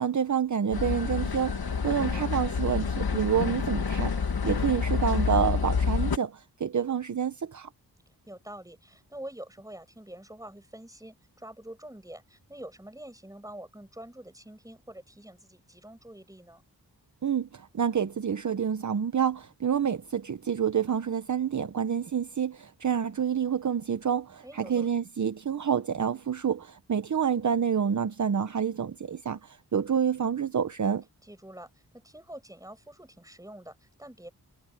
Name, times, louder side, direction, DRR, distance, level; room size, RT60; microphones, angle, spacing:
voice 1, 0.0-7.7 17.2-31.0, right 7 dB, 50° right, 0.8 m, -28 dB
sound 1, 0.7-6.2, left 5 dB, 70° left, 1.9 m, -28 dB
voice 2, 1.7-2.3 8.3-16.6 24.4-24.9 31.2-34.3, right 1 dB, 10° right, 7.2 m, -46 dB
wide cardioid pair, 125°, 38 cm